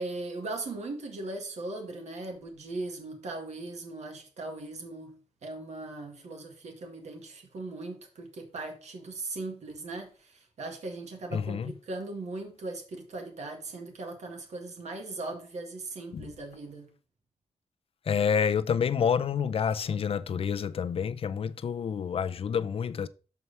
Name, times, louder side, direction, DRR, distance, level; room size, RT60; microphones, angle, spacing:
voice 1, 0.0-5.2 5.4-16.9, right 2 dB, 80° right, 2.0 m, -39 dB
voice 2, 11.3-11.7 16.1-16.3 18.1-23.1, left 7 dB, 55° left, 0.5 m, -28 dB
6.8 x 4.6 x 5.4 m
wide cardioid pair, 135°, 11 cm